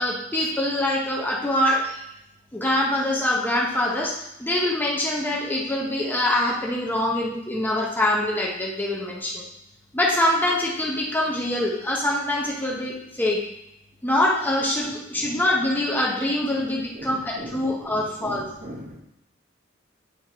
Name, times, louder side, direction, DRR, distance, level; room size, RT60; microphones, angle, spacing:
voice 1, 0.0-2.0 2.5-9.4 9.9-13.4 14.0-18.5, left 1 dB, 10° left, -3 dB, 0.7 m, -24 dB
voice 2, 16.9-19.0, equal, 35° right, 1 dB, 0.9 m, -39 dB
9.5 x 3.5 x 3.0 m, 0.82 s
head